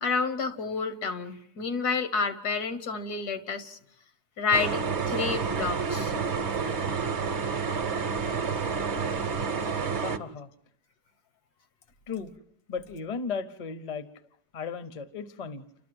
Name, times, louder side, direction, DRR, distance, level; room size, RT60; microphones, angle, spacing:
voice 1, 0.0-3.8 4.4-6.3, left 4 dB, 75° left, 10 dB, 1.8 m, -29 dB
sound 1, 4.5-10.2, right 5 dB, 50° right, 1.1 m, -29 dB
voice 2, 10.0-10.5 12.1-12.3 12.7-14.1 14.5-15.6, left 5 dB, 30° left, 13 dB, 0.8 m, -35 dB
29.5 x 13.0 x 7.8 m, 0.71 s
omnidirectional pair, 1.7 m